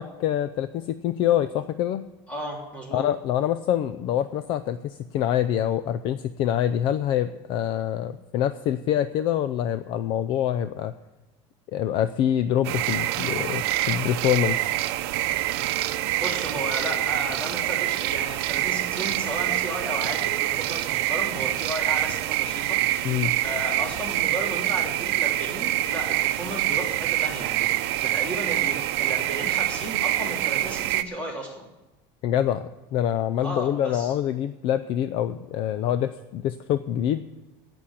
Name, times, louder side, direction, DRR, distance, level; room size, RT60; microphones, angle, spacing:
voice 1, 0.0-2.1 2.9-10.9 11.7-14.8 23.0-23.3 32.2-37.3, left 10 dB, 40° left, 12 dB, 0.5 m, -25 dB
voice 2, 2.3-3.0 16.1-31.7 33.4-34.1, equal, 10° left, -2 dB, 3.4 m, -34 dB
sound 1, 12.6-31.0, right 15 dB, 80° right, 0.8 m, -26 dB
17.0 x 6.2 x 9.9 m, 1.1 s
cardioid pair, 175°, 13 cm